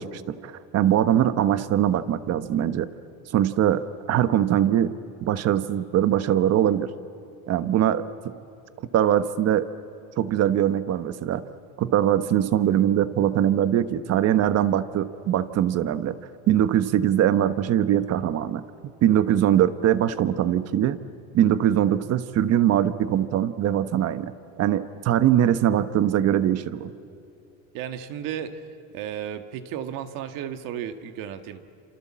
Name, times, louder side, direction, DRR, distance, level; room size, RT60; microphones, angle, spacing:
voice 1, 0.0-2.9 3.3-4.9 5.2-6.9 7.5-8.3 8.8-9.7 10.2-11.4 11.8-16.2 16.5-18.6 19.0-21.0 21.3-24.3 24.6-26.9, right 11 dB, 40° right, 12 dB, 1.1 m, -22 dB
voice 2, 27.7-28.6 28.9-31.6, right 9 dB, 55° right, 8 dB, 1.8 m, -33 dB
29.0 x 27.0 x 7.5 m, 2.5 s
supercardioid pair, 120°, 38 cm